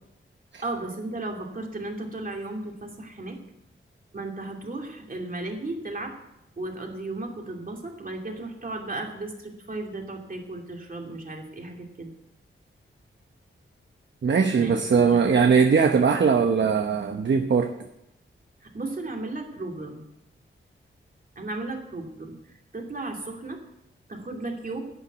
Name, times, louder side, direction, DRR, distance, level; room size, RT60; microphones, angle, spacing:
voice 1, 0.6-3.4 4.1-6.1 6.6-12.1 14.5-15.2 18.6-20.0 21.4-22.3 22.7-23.6 24.1-24.8, right 2 dB, 40° right, 1 dB, 2.6 m, -35 dB
voice 2, 14.2-17.7, right 5 dB, 60° right, 5 dB, 0.9 m, -20 dB
11.0 x 8.7 x 8.0 m, 0.85 s
wide cardioid pair, 105°, 21 cm